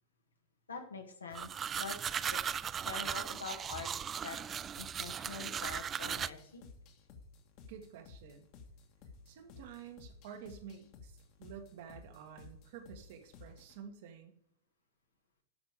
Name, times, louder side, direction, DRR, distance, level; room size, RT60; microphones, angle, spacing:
voice 1, 0.7-2.4 2.8-4.4 4.8-6.6, left 5 dB, 75° left, 3 dB, 2.0 m, -45 dB
sound 1, 1.3-6.3, right 8 dB, 25° right, 0.3 m, -37 dB
sound 2, 6.1-13.8, left 4 dB, 40° left, 1.8 m, -56 dB
voice 2, 7.7-8.5 9.3-14.4, right 8 dB, 55° right, 5 dB, 1.7 m, -50 dB
13.0 x 6.0 x 5.0 m, 0.72 s
figure-of-eight pair, 90°, 0 cm